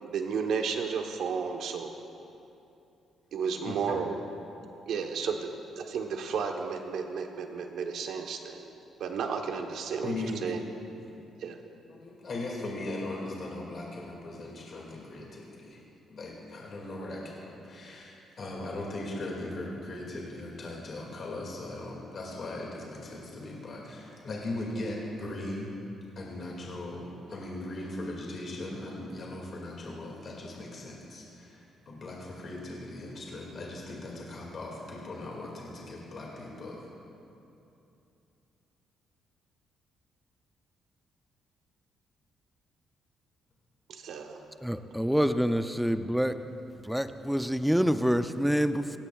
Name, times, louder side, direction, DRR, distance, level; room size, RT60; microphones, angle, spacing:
voice 1, 0.0-1.9 3.3-4.1 4.9-5.5 5.7-8.7 9.0-10.6 11.4-11.6 43.9-44.4, right 6 dB, 75° right, 4 dB, 1.1 m, -33 dB
voice 2, 3.6-4.0 10.0-10.5 11.1-11.2 12.0-15.8 16.1-25.8 26.2-36.9, left 2 dB, 50° left, -2 dB, 2.3 m, -39 dB
voice 3, 44.6-46.4 46.8-49.0, equal, ahead, 9 dB, 0.6 m, -27 dB
17.0 x 16.0 x 2.4 m, 2.8 s
cardioid pair, 90°, 0 cm